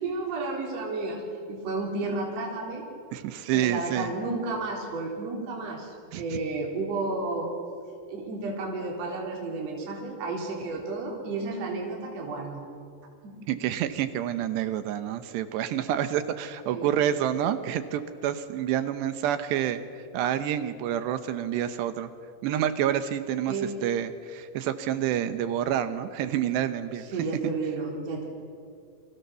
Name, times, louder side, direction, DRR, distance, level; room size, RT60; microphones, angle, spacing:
voice 1, 0.0-1.2 1.5-2.8 3.5-7.5 8.1-12.6 13.2-13.4 16.7-16.9 23.5-23.7 27.0-28.3, right 3 dB, 35° right, -1 dB, 4.6 m, -32 dB
voice 2, 3.1-4.1 6.1-6.4 13.5-19.8 20.1-22.1 22.4-23.5 23.8-27.0 27.4-27.5, right 10 dB, 75° right, 11 dB, 2.9 m, -28 dB
29.0 x 24.5 x 6.9 m, 2.3 s
omnidirectional pair, 5.3 m